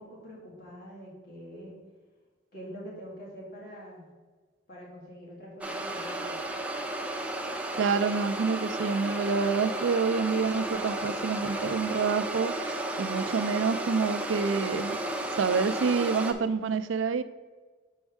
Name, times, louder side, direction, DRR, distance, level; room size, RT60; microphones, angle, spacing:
voice 1, 0.0-1.8 2.5-4.1 4.7-6.4, equal, 55° left, -4 dB, 2.1 m, -45 dB
sound 1, 5.6-16.3, right 1 dB, 5° right, 0.5 m, -33 dB
voice 2, 7.8-15.0 15.3-17.2, right 5 dB, 80° right, 11 dB, 0.4 m, -27 dB
6.4 x 6.2 x 3.5 m, 1.4 s
head